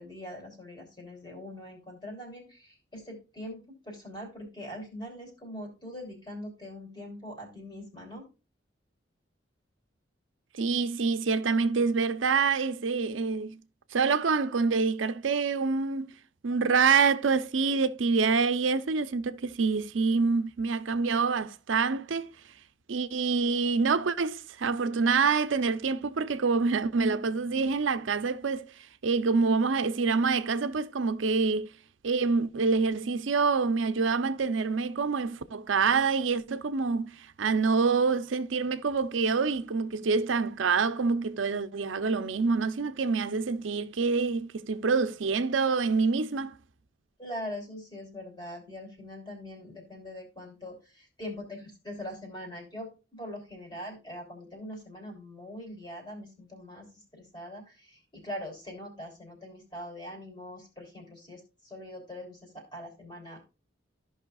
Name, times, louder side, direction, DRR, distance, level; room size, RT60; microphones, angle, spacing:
voice 1, 0.0-8.2 47.2-63.4, left 1 dB, 25° left, 3.2 m, -42 dB
voice 2, 10.5-13.6 13.9-16.1 16.4-22.3 22.9-31.7 32.0-46.6, right 4 dB, 90° right, 0.6 m, -26 dB
14.0 x 5.6 x 2.3 m
head